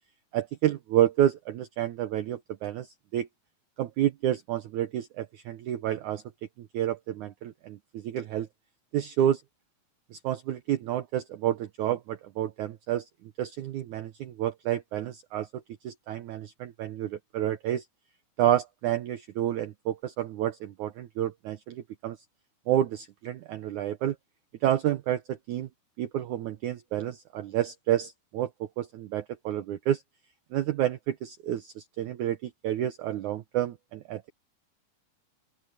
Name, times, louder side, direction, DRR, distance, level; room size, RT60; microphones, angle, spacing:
voice 1, 0.3-3.3 3.8-6.2 6.6-8.5 8.9-9.4 10.1-17.8 18.4-22.2 22.7-24.2 24.6-25.7 26.0-28.5 28.8-30.0 30.5-34.2, right 12 dB, 85° right, 1.7 m, -29 dB
open air
omnidirectional pair, 4.7 m